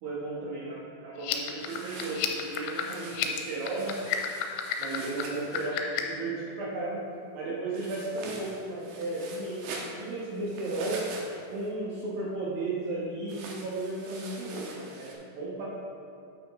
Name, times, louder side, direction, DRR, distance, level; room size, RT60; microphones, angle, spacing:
voice 1, 0.0-4.1 4.8-7.1 7.3-11.1 11.5-15.7, right 2 dB, 65° right, -5 dB, 2.4 m, -34 dB
sound 1, 1.2-6.2, left 10 dB, 85° left, 3.0 m, -32 dB
sound 2, 1.6-5.7 7.7-11.7 13.3-15.1, right 3 dB, 85° right, 2.0 m, -44 dB
9.3 x 9.1 x 3.1 m, 2.3 s
omnidirectional pair, 5.5 m